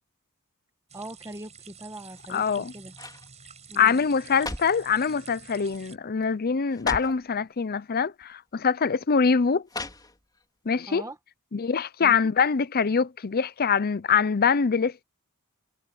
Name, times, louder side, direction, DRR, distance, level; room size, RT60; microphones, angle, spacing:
voice 1, 0.9-2.9 3.7-4.0 10.9-11.2 12.0-12.3, right 1 dB, 15° right, 1.5 m, -41 dB
sound 1, 0.9-6.0, right 6 dB, 30° right, 5.5 m, -49 dB
sound 2, 2.1-2.5 2.9-3.3 4.1-4.9 5.7-5.9 6.2-6.3 6.7-7.3 8.2-8.3 9.7-10.4 10.8-10.9, left 2 dB, 20° left, 4.5 m, -37 dB
voice 2, 2.3-2.7 3.8-9.6 10.7-11.0 11.5-15.0, left 6 dB, 45° left, 0.6 m, -24 dB
head